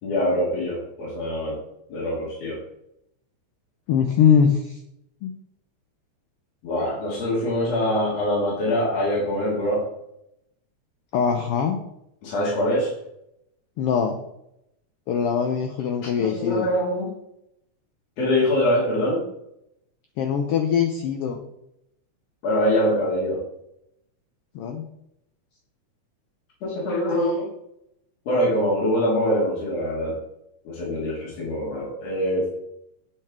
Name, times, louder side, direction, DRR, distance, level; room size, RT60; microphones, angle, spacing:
voice 1, 0.0-1.6 1.9-2.6 6.6-9.8 12.2-12.9 16.2-17.1 18.2-19.2 22.4-23.4 26.6-27.5 28.3-30.1 30.6-32.5, equal, 65° left, -6 dB, 2.9 m, -24 dB
voice 2, 3.9-4.8 5.2-5.3 11.1-11.8 13.8-14.2 15.1-16.7 20.2-21.4 24.5-24.8, left 7 dB, 90° left, 5 dB, 1.3 m, -22 dB
8.4 x 5.5 x 3.5 m, 0.80 s
omnidirectional pair, 3.4 m